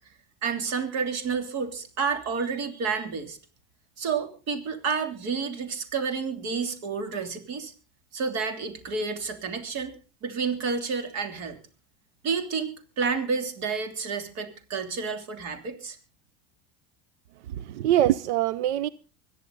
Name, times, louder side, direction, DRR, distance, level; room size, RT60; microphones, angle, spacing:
voice 1, 0.4-3.4 4.0-7.7 8.1-9.9 10.2-11.6 12.2-16.0, right 5 dB, 55° right, 3.1 m, -30 dB
voice 2, 17.5-18.9, right 12 dB, 90° right, 0.7 m, -24 dB
24.5 x 10.5 x 3.9 m
supercardioid pair, 115°, 33 cm